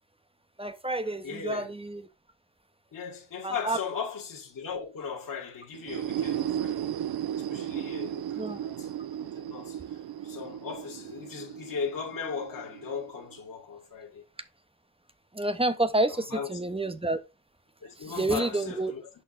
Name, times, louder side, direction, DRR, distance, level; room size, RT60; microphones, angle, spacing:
voice 1, 0.6-2.0 3.4-3.8 8.4-8.6 15.3-17.2 18.0-18.9, right 2 dB, 10° right, 0.9 m, -29 dB
voice 2, 1.2-1.7 2.9-6.9 7.3-8.9 9.2-14.2 16.1-16.6 17.8-19.1, left 6 dB, 40° left, 1.5 m, -38 dB
sound 1, 5.7-13.4, right 10 dB, 50° right, 0.7 m, -35 dB
5.9 x 4.5 x 4.0 m
supercardioid pair, 50°, 50 cm